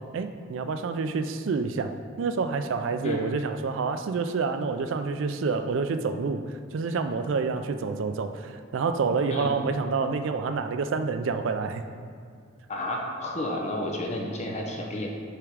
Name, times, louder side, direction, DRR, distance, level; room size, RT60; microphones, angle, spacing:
voice 1, 0.1-6.4 6.7-11.8, right 4 dB, 70° right, 9 dB, 0.4 m, -28 dB
voice 2, 12.7-15.1, left 1 dB, 35° left, 0 dB, 0.7 m, -31 dB
6.6 x 3.6 x 4.7 m, 2.3 s
head